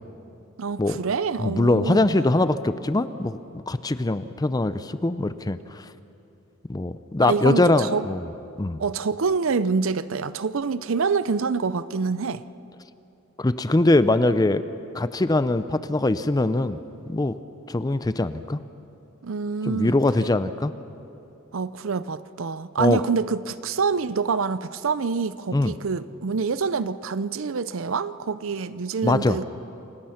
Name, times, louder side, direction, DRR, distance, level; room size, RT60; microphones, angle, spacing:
voice 1, 0.6-2.0 7.2-8.1 8.8-12.4 19.2-20.0 21.5-29.4, right 5 dB, 65° right, 0.6 m, -26 dB
voice 2, 1.4-5.9 6.7-8.3 8.6-8.8 13.4-14.6 14.9-16.8 17.1-17.4 17.7-18.6 19.6-20.7 22.8-23.0 25.5-25.7 29.0-29.4, left 2 dB, 20° left, 0.5 m, -22 dB
28.0 x 17.0 x 5.8 m
head